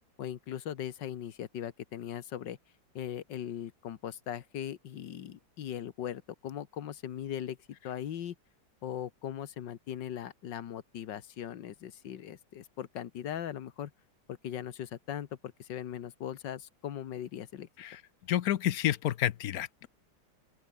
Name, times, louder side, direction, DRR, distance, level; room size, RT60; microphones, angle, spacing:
voice 1, 0.2-2.6 3.0-7.6 7.8-8.4 8.8-13.9 14.3-17.7, left 10 dB, 90° left, 1.8 m, -39 dB
voice 2, 18.3-19.9, left 12 dB, 65° left, 1.1 m, -30 dB
open air
omnidirectional pair, 1.9 m